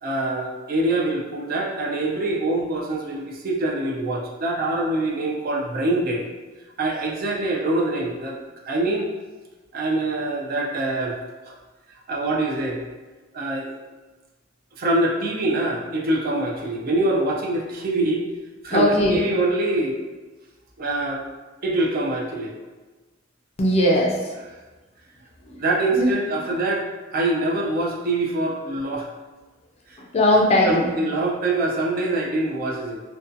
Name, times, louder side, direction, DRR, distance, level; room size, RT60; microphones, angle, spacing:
voice 1, 0.0-6.2 6.8-8.4 8.6-9.1 9.7-11.2 11.4-11.5 12.1-12.8 13.3-13.8 14.8-18.3 18.6-20.0 20.8-21.2 21.6-22.5 25.6-26.9 27.1-29.1 29.9-30.0 30.6-33.0, right 2 dB, 50° right, -2 dB, 0.4 m, -24 dB
voice 2, 18.7-19.2 23.6-24.3 25.5-25.6 25.9-26.1 30.0-30.9, left 1 dB, 35° left, -1 dB, 0.4 m, -19 dB
2.5 x 2.2 x 2.5 m, 1.2 s
head